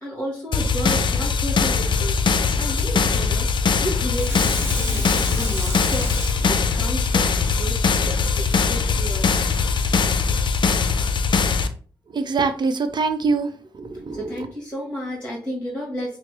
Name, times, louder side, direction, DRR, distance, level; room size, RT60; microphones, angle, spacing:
voice 1, 0.0-2.2 2.6-3.5 3.8-9.3 13.8-16.2, equal, 15° left, -2 dB, 1.5 m, -32 dB
sound 1, 0.5-11.7, left 5 dB, 60° left, 0.5 m, -21 dB
Water tap faucet / Sink (filling or washing), 4.1-7.9 8.4-8.5, right 1 dB, 25° right, 1.6 m, -34 dB
voice 2, 12.1-13.5 13.7-14.5, right 4 dB, 55° right, 9 dB, 0.6 m, -24 dB
5.7 x 2.0 x 3.2 m, 0.42 s
cardioid pair, 55°, 9 cm